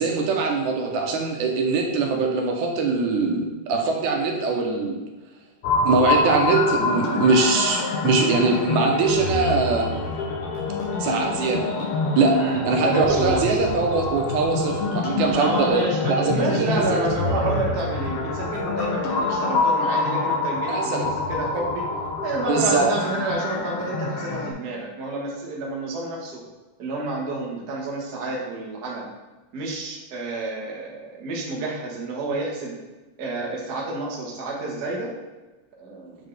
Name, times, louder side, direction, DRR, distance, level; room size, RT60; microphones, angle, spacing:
voice 1, 0.0-5.0 5.8-9.9 11.0-11.6 12.2-12.4 12.7-16.8 20.7-21.1 22.5-22.9, right 4 dB, 80° right, 2 dB, 2.1 m, -22 dB
sound 1, 5.6-24.5, left 3 dB, 75° left, 1.4 m, -26 dB
voice 2, 12.3-13.6 15.3-21.9 22.2-26.4 26.8-29.1 29.5-32.8 33.2-35.1 35.8-36.2, right 2 dB, 55° right, -3 dB, 1.1 m, -29 dB
7.2 x 4.2 x 3.3 m, 1.1 s
omnidirectional pair, 3.5 m